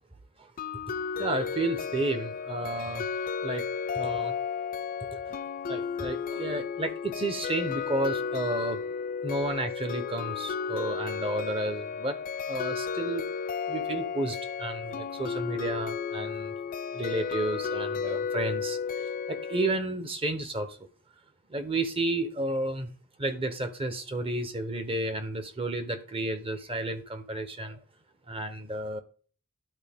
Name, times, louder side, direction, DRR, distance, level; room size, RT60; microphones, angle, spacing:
sound 1, 0.6-19.8, left 6 dB, 40° left, 0.3 m, -33 dB
voice 1, 1.2-3.1 3.4-3.6 3.9-4.4 5.3-5.4 5.7-8.8 9.2-12.2 12.5-13.3 13.7-16.5 16.9-20.8 21.5-22.9 23.2-27.8 28.3-29.0, right 2 dB, 25° right, 0.9 m, -32 dB
11.5 x 4.3 x 3.6 m
head